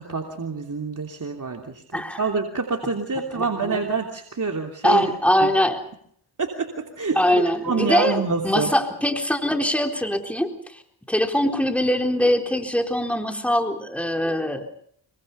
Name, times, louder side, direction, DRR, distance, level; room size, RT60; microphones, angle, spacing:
voice 1, 0.0-5.0 6.4-8.7, right 4 dB, 40° right, 2 dB, 3.2 m, -27 dB
voice 2, 3.3-3.8 4.8-5.8 7.2-10.8 11.1-14.6, left 1 dB, 5° left, 3 dB, 4.0 m, -22 dB
26.0 x 24.0 x 5.6 m, 0.66 s
cardioid pair, 55°, 46 cm